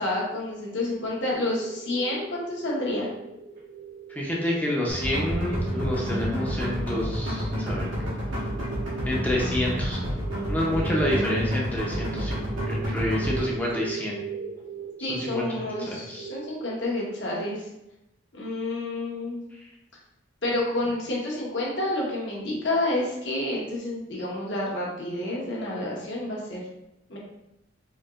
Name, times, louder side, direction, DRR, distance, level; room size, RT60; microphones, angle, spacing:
voice 1, 0.0-3.1 15.0-17.7 18.3-19.4 20.4-26.7 27.1-27.2, left 1 dB, 65° left, -4 dB, 1.1 m, -29 dB
sound 1, 1.3-17.4, right 7 dB, 50° right, 0.9 m, -41 dB
voice 2, 4.1-7.9 9.1-10.0 10.5-14.2 15.0-16.3, left 1 dB, 10° left, -3 dB, 0.6 m, -28 dB
sound 2, 4.9-13.4, equal, 80° right, 1.3 m, -29 dB
4.4 x 2.8 x 2.4 m, 0.86 s
head